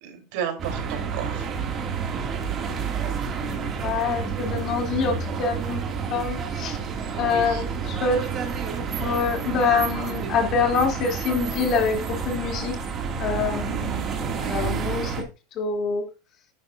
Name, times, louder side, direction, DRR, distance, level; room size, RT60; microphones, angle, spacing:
voice 1, 0.0-1.5 7.1-7.7, right 8 dB, 65° right, 5 dB, 3.3 m, -33 dB
sound 1, 0.6-15.2, right 6 dB, 30° right, 2.1 m, -29 dB
voice 2, 3.7-5.8 6.1-6.8 7.2-8.2 9.0-12.0 12.2-12.8 13.2-14.0 14.4-15.1 15.5-16.0, left 5 dB, 40° left, 3 dB, 2.7 m, -25 dB
10.5 x 9.5 x 2.5 m, 0.29 s
supercardioid pair, 135°, 0 cm